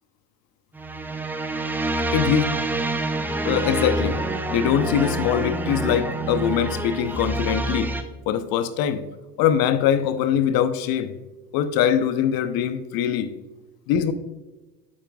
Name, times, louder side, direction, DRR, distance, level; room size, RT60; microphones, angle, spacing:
sound 1, 0.7-8.0, right 2 dB, 5° right, 0.3 m, -27 dB
voice 1, 2.1-2.5 3.4-4.2 4.5-7.9 8.3-9.0 9.4-11.1 11.5-13.3 13.9-14.1, left 9 dB, 45° left, 12 dB, 0.8 m, -22 dB
9.1 x 8.5 x 2.4 m, 1.1 s
figure-of-eight pair, 75°, 50 cm